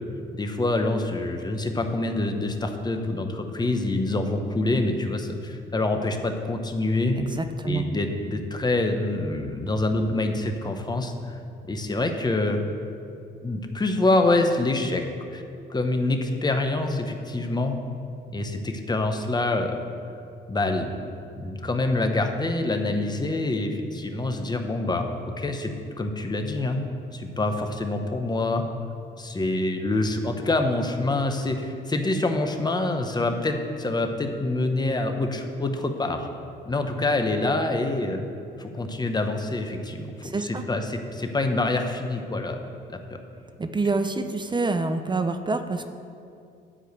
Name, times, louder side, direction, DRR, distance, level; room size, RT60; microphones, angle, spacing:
voice 1, 0.3-7.2 7.6-11.4 11.6-12.6 13.4-15.0 15.3-15.4 15.7-17.8 18.3-19.8 20.5-21.0 21.4-25.1 25.4-26.8 27.1-28.7 29.2-36.3 36.7-38.2 38.6-40.1 40.4-42.6 42.9-43.0, left 2 dB, 20° left, 5 dB, 1.0 m, -26 dB
voice 2, 7.2-7.9 40.2-40.6 43.6-45.9, right 3 dB, 25° right, 8 dB, 0.6 m, -27 dB
9.9 x 4.9 x 8.0 m, 2.5 s
cardioid pair, 90°, 20 cm